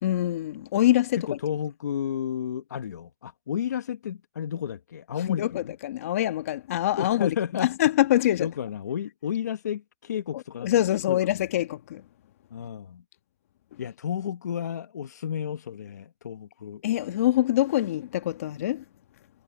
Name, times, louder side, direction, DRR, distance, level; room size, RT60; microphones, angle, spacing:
voice 1, 0.0-1.4 5.3-8.5 10.3-12.0 16.8-18.8, left 13 dB, 55° left, 1.5 m, -25 dB
voice 2, 1.3-5.7 7.0-7.7 8.4-10.7 11.1-11.5 12.5-13.0 13.8-16.8, left 9 dB, 85° left, 1.2 m, -32 dB
hypercardioid pair, 155°, 9 cm